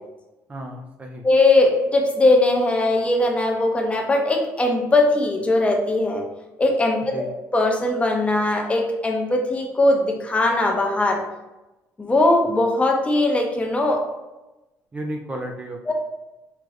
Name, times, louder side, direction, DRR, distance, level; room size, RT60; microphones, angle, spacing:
voice 1, 0.5-1.2 7.1-7.3 14.9-15.9, right 1 dB, 25° right, 1 dB, 0.5 m, -33 dB
voice 2, 1.2-6.2 6.6-7.1 7.5-11.2 12.0-14.0 15.9-16.0, left 2 dB, 20° left, 1 dB, 0.7 m, -20 dB
4.8 x 2.5 x 3.1 m, 1.0 s
cardioid pair, 110°, 6 cm